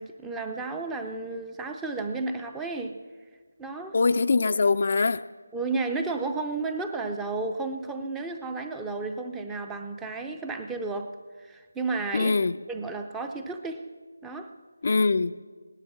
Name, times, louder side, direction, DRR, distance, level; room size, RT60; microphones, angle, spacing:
voice 1, 0.0-3.0 3.6-4.0 5.5-11.1 11.4-12.3 12.7-13.9 14.2-14.5, right 3 dB, 5° right, 6 dB, 0.5 m, -32 dB
voice 2, 3.9-5.2 12.1-12.6 14.8-15.4, left 4 dB, 45° left, 11 dB, 0.4 m, -23 dB
17.0 x 11.5 x 7.0 m, 1.5 s
figure-of-eight pair, 165°, 0 cm